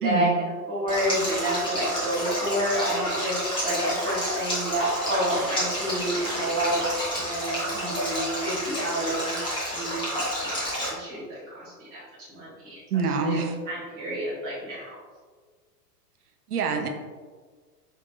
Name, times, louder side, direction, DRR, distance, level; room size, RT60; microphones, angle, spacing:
voice 1, 0.0-0.4 12.9-13.6 16.5-16.9, right 5 dB, 65° right, 5 dB, 0.6 m, -26 dB
voice 2, 0.7-3.3 3.6-3.8 4.0-6.8 7.1-12.0 12.3-12.8 13.2-13.4 13.7-14.9, right 1 dB, 10° right, -9 dB, 0.3 m, -29 dB
Stream, 0.9-10.9, equal, 10° left, 0.7 m, -30 dB
sound 1, 5.3-8.3, right 1 dB, 25° right, 0.8 m, -41 dB
4.8 x 2.6 x 2.2 m, 1.5 s
figure-of-eight pair, 95°, 48 cm